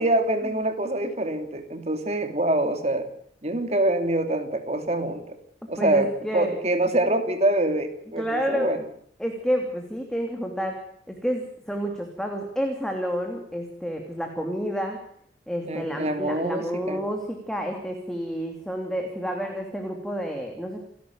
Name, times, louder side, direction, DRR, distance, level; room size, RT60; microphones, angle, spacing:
voice 1, 0.0-3.1 3.4-5.4 5.7-8.8 15.7-17.0, right 1 dB, 35° right, 8 dB, 3.0 m, -25 dB
voice 2, 5.8-6.5 8.2-8.8 9.2-10.8 11.1-15.0 15.5-20.8, equal, 5° left, 2 dB, 2.9 m, -29 dB
29.0 x 12.5 x 9.4 m, 0.66 s
head